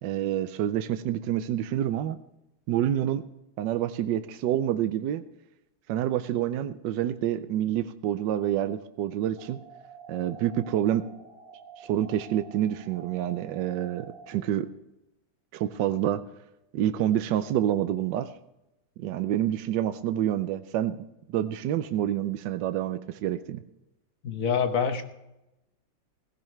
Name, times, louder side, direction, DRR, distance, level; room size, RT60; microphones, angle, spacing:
voice 1, 0.0-2.2 2.7-3.2 3.6-5.2 5.9-9.6 10.1-11.1 11.8-14.7 15.5-16.2 16.7-18.3 19.0-23.6, right 11 dB, 75° right, 11 dB, 1.3 m, -28 dB
sound 1, 9.4-14.4, right 5 dB, 20° right, 2.7 m, -48 dB
voice 2, 24.2-25.0, left 6 dB, 50° left, 7 dB, 1.3 m, -26 dB
16.5 x 15.5 x 3.2 m, 0.92 s
omnidirectional pair, 2.0 m